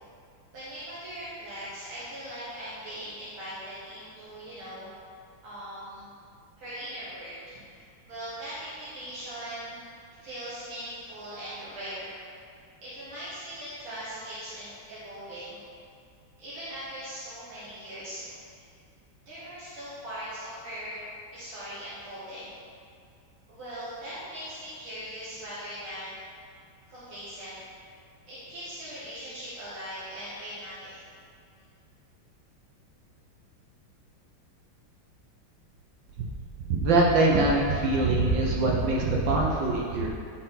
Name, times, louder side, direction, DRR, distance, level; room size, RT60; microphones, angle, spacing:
voice 1, 0.5-4.9 5.4-6.1 6.6-12.2 12.8-15.6 16.4-18.3 19.3-22.5 23.5-26.1 26.9-27.6 28.3-31.0, equal, 85° right, -12 dB, 2.7 m, -40 dB
voice 2, 36.7-40.1, right 2 dB, 70° right, -3 dB, 1.6 m, -23 dB
11.5 x 4.6 x 4.0 m, 2.3 s
omnidirectional pair, 2.2 m